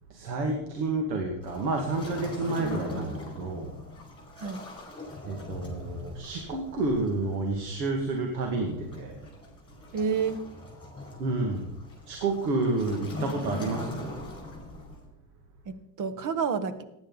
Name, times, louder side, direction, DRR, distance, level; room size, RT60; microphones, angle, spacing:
voice 1, 0.1-3.8 5.2-9.2 11.2-11.7 12.1-14.2, right 3 dB, 80° right, 3 dB, 2.3 m, -30 dB
Waves surf, 1.4-15.1, left 2 dB, 10° left, 5.1 m, -41 dB
voice 2, 9.9-10.4 15.6-16.8, right 6 dB, 40° right, 12 dB, 1.4 m, -29 dB
15.5 x 10.5 x 4.1 m, 0.87 s
supercardioid pair, 110°, 49 cm